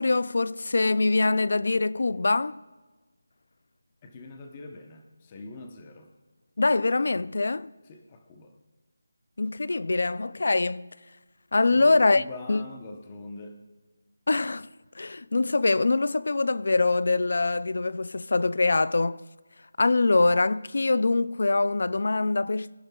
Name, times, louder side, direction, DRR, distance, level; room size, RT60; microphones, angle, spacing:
voice 1, 0.0-2.6 6.6-7.7 9.4-10.9 11.5-12.2 12.5-12.6 14.3-14.7 15.0-19.2 19.8-22.7, left 3 dB, 55° left, 0.4 m, -24 dB
voice 2, 4.0-6.1 7.9-8.5 11.7-13.6, left 3 dB, 15° left, 0.9 m, -43 dB
23.0 x 11.5 x 2.4 m
figure-of-eight pair, 175°, 0 cm